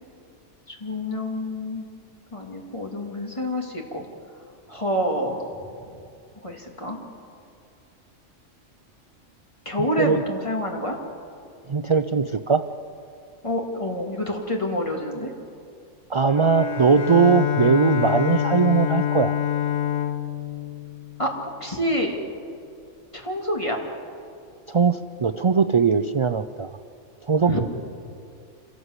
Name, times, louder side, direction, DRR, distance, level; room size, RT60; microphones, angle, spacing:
voice 1, 0.7-1.9 2.3-4.1 4.7-5.5 6.4-7.0 9.6-11.0 13.4-15.3 21.2-22.2 23.1-23.8 27.5-27.6, equal, 25° left, 0 dB, 2.8 m, -27 dB
voice 2, 9.8-10.2 11.7-12.6 16.1-19.3 24.7-26.7 27.3-27.6, right 5 dB, 45° right, 10 dB, 0.4 m, -20 dB
Bowed string instrument, 16.3-21.8, left 10 dB, 85° left, 1.3 m, -26 dB
26.5 x 18.0 x 8.2 m, 2.4 s
omnidirectional pair, 1.3 m